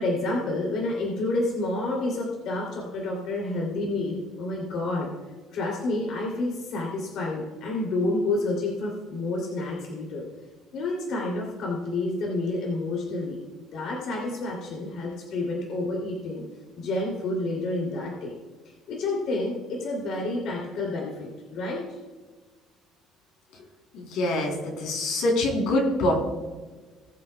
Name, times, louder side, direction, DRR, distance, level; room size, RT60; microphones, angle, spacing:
voice 1, 0.0-5.1 5.5-10.2 10.7-13.4 13.7-16.4 16.8-18.3 18.9-21.8, left 2 dB, 55° left, -1 dB, 2.7 m, -29 dB
voice 2, 23.9-24.5 24.8-26.1, left 1 dB, 70° left, 0 dB, 3.3 m, -24 dB
20.0 x 7.6 x 2.2 m, 1.3 s
cardioid pair, 155°, 0 cm